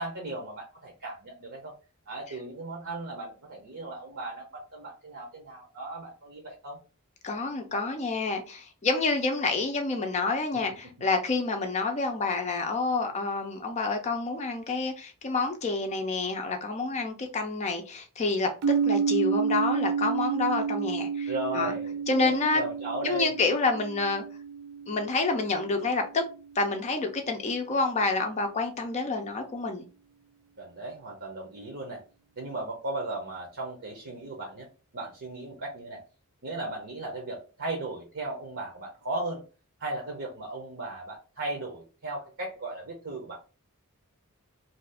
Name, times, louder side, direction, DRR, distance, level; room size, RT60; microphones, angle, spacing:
voice 1, 0.0-1.7 2.1-6.8 21.3-23.4 30.6-32.0 32.4-34.7 34.9-36.0 36.4-39.4 39.8-43.4, right 2 dB, 60° right, 0.8 m, -36 dB
voice 2, 7.2-18.5 18.8-21.7 22.1-22.6 23.0-24.2 24.9-26.2 26.6-29.8, left 3 dB, 30° left, 0.4 m, -28 dB
sound 1, 18.6-26.4, right 6 dB, 80° right, 0.3 m, -30 dB
2.7 x 2.4 x 3.4 m
head